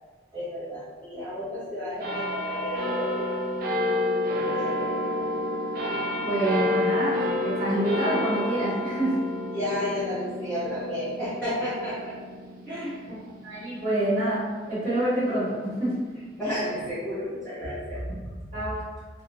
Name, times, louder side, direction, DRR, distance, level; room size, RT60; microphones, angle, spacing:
voice 1, 0.3-3.7 4.4-5.2 9.5-12.2 12.7-13.0 16.1-18.4, left 1 dB, 5° left, -14 dB, 0.9 m, -32 dB
sound 1, 2.0-14.9 15.5-15.6, left 1 dB, 50° right, 0.5 m, -30 dB
voice 2, 6.2-9.2 13.1-13.2 13.4-16.0 18.5-18.8, right 1 dB, 25° right, -11 dB, 1.2 m, -27 dB
3.2 x 2.7 x 2.8 m, 1.4 s
head